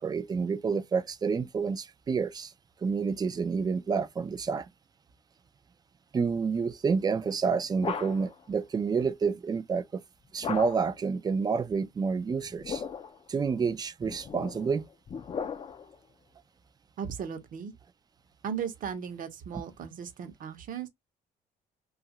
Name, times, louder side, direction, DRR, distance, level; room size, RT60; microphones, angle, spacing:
voice 1, 0.0-2.5 2.8-4.7 6.1-10.0 10.3-12.8 13.3-14.9, right 5 dB, 25° right, 0.4 m, -29 dB
sound 1, 7.2-8.4 10.4-11.0 12.4-13.2 14.0-16.0, left 6 dB, 30° left, 0.5 m, -37 dB
voice 2, 17.0-17.7 18.4-20.9, right 7 dB, 55° right, 0.9 m, -36 dB
2.8 x 2.4 x 2.8 m
cardioid pair, 110°, 17 cm